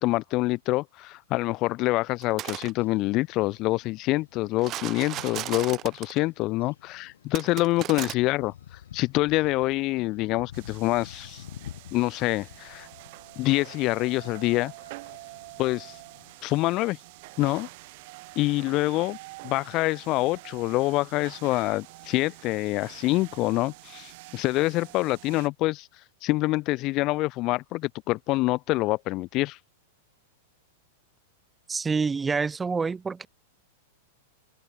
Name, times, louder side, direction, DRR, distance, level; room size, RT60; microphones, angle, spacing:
voice 1, 0.0-8.5 8.9-11.4 11.9-12.9 13.4-14.7 15.6-16.0 16.4-17.0 17.4-17.7 18.4-19.2 19.4-25.9 26.2-29.6, left 20 dB, 35° left, 0.6 m, -26 dB
sound 1, 2.2-2.7 4.6-6.2 7.3-8.1, right 14 dB, 30° right, 0.3 m, -35 dB
sound 2, 2.8-16.4, left 10 dB, 85° left, 2.5 m, -50 dB
sound 3, 10.5-25.5, right 24 dB, 50° right, 1.8 m, -47 dB
voice 2, 31.7-33.3, right 5 dB, 10° right, 0.7 m, -27 dB
supercardioid pair, 150°, 0 cm